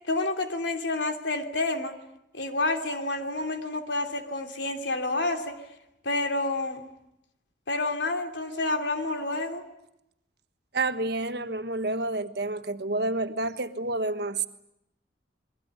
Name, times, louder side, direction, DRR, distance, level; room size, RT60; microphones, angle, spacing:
voice 1, 0.1-1.9 2.3-5.6 6.0-6.9 7.7-9.6, left 2 dB, 80° left, 6 dB, 3.0 m, -29 dB
voice 2, 10.7-14.5, right 2 dB, 60° right, 10 dB, 1.4 m, -29 dB
28.0 x 21.5 x 9.6 m, 0.84 s
head